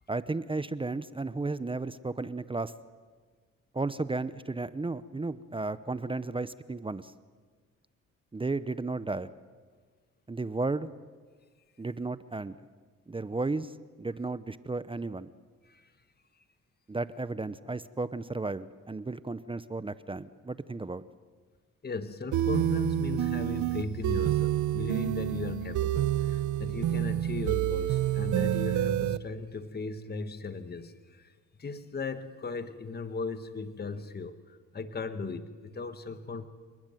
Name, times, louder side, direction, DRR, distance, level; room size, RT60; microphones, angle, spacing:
voice 1, 0.1-2.7 3.7-7.1 8.3-9.3 10.3-10.9 11.8-12.6 13.1-15.3 16.9-21.0, right 3 dB, 15° right, 14 dB, 0.9 m, -34 dB
voice 2, 21.8-31.3 31.6-36.5, left 4 dB, 30° left, 10 dB, 1.7 m, -37 dB
sound 1, 22.3-29.2, right 13 dB, 75° right, 0.9 m, -28 dB
29.0 x 20.0 x 9.2 m, 1.5 s
cardioid pair, 90°, 30 cm